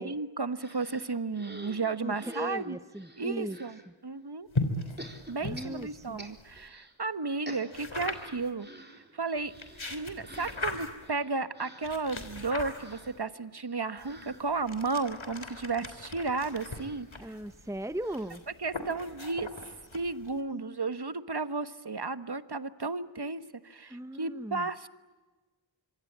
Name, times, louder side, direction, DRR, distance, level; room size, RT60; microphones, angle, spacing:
voice 1, 0.0-2.8 3.2-4.5 5.3-8.7 9.1-9.5 9.9-17.4 18.6-19.5 19.9-24.9, right 3 dB, 55° right, 12 dB, 1.4 m, -33 dB
sound 1, 0.6-3.9 5.0-7.0 7.2-19.2 19.5-19.6 19.8-20.0, right 1 dB, 20° right, 3.9 m, -51 dB
voice 2, 2.0-3.6 5.4-6.2 17.2-18.4 20.5-20.8 23.9-24.7, right 1 dB, 5° right, 12 dB, 0.9 m, -38 dB
sound 2, 4.5-6.7 7.7-8.5 9.4-11.1 11.8-13.2 14.0-20.4, left 2 dB, 80° left, 3.4 m, -39 dB
26.0 x 25.0 x 8.8 m, 1.3 s
wide cardioid pair, 45°, 46 cm